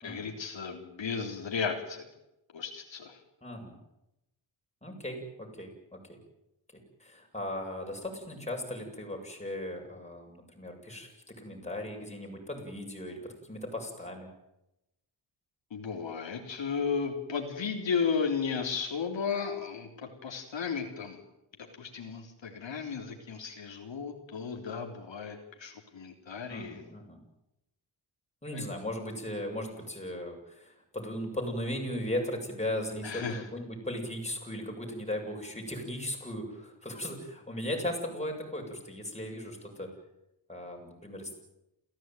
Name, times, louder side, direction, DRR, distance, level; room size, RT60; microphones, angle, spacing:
voice 1, 0.0-2.0 2.5-3.2 15.7-19.9 20.2-21.2 21.8-26.9 28.5-28.6 33.0-33.5, left 5 dB, 70° left, 2 dB, 3.7 m, -34 dB
voice 2, 3.4-3.8 4.8-6.0 7.0-14.3 26.5-27.2 28.4-39.9 40.5-41.3, left 1 dB, 15° left, 1 dB, 7.4 m, -37 dB
29.0 x 16.5 x 9.3 m, 0.89 s
wide cardioid pair, 120°, 46 cm